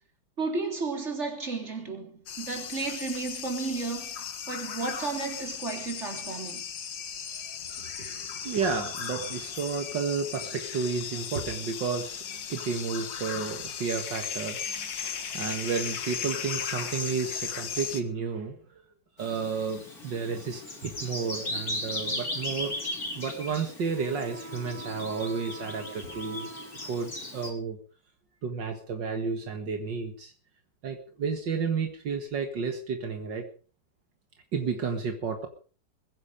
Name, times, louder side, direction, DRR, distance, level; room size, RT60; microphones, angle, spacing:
voice 1, 0.4-6.6 7.9-8.1, right 4 dB, 35° right, 3.9 m, -33 dB
sound 1, 2.3-18.0, left 7 dB, 80° left, 2.1 m, -36 dB
voice 2, 7.8-18.7 19.2-22.8 23.2-27.8 28.4-30.3 30.8-33.5 34.5-35.5, right 5 dB, 75° right, 2.4 m, -32 dB
Bird vocalization bird call bird song, 19.2-27.5, left 1 dB, 50° left, 4.7 m, -37 dB
21.5 x 10.5 x 5.1 m
omnidirectional pair, 2.0 m